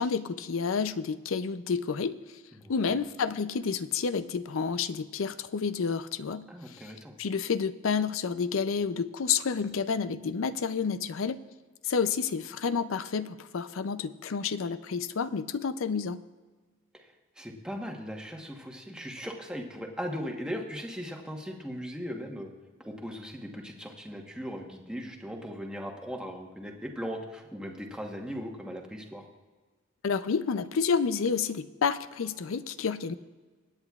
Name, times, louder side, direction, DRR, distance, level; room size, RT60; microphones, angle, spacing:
voice 1, 0.0-2.4 2.7-6.9 7.2-11.4 11.8-16.2 30.0-33.1, left 5 dB, 80° left, 14 dB, 0.5 m, -30 dB
voice 2, 2.6-3.0 6.5-7.2 17.4-22.5 22.8-29.2, equal, 5° right, 1 dB, 1.1 m, -38 dB
24.5 x 8.9 x 2.4 m, 1.4 s
head